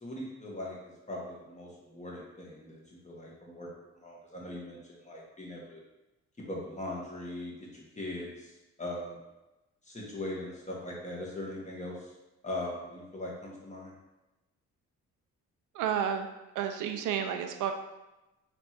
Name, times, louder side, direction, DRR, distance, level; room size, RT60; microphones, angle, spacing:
voice 1, 0.0-2.8 3.0-3.7 4.0-5.8 6.5-8.5 8.8-9.2 9.9-12.1 12.4-13.9, left 1 dB, 25° left, -3 dB, 1.3 m, -40 dB
voice 2, 15.7-16.3 16.6-17.7, right 8 dB, 85° right, 6 dB, 0.5 m, -31 dB
3.3 x 3.1 x 4.3 m, 1.0 s
cardioid pair, 90°, 30 cm